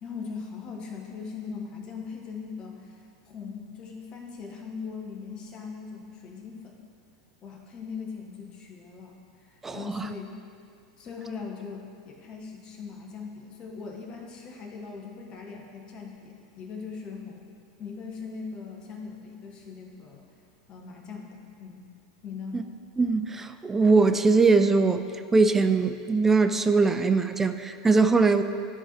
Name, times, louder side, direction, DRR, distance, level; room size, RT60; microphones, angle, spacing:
voice 1, 0.0-6.8 7.4-10.4 11.0-17.5 17.8-20.3 20.7-21.8 22.2-22.6, left 5 dB, 35° left, 0 dB, 1.2 m, -40 dB
voice 2, 9.6-10.1 22.5-22.6 23.0-25.0 25.3-28.4, right 4 dB, 15° right, 8 dB, 0.4 m, -21 dB
13.5 x 4.6 x 3.0 m, 2.4 s
figure-of-eight pair, 85°, 2 cm